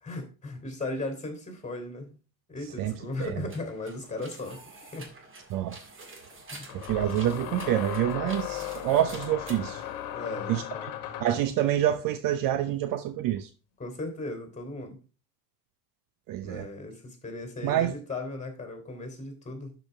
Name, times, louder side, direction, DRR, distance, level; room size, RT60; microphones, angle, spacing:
voice 1, 0.0-2.2 2.5-5.1 6.5-6.8 10.1-10.9 13.8-15.0 16.4-19.8, left 2 dB, 15° left, 3.3 m, -37 dB
sound 1, 2.7-10.6, right 3 dB, 25° right, 2.2 m, -48 dB
voice 2, 2.8-3.3 5.5-5.8 6.7-9.8 10.5-10.6 11.2-13.5 16.3-16.7 17.6-17.9, right 12 dB, 45° right, 0.8 m, -27 dB
sound 2, 4.7-4.8 6.7-11.5, left 11 dB, 60° left, 1.5 m, -37 dB
12.0 x 5.4 x 3.4 m
hypercardioid pair, 70°, 49 cm